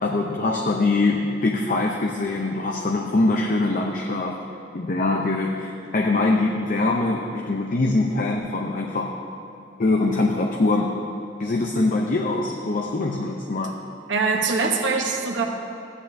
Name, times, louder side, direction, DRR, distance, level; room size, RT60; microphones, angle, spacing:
voice 1, 0.0-4.4 4.7-9.2 9.8-11.0 11.4-13.8, left 2 dB, 45° left, 1 dB, 0.6 m, -23 dB
voice 2, 14.1-15.4, right 4 dB, 75° right, 2 dB, 0.9 m, -23 dB
14.5 x 9.8 x 2.7 m, 2.6 s
head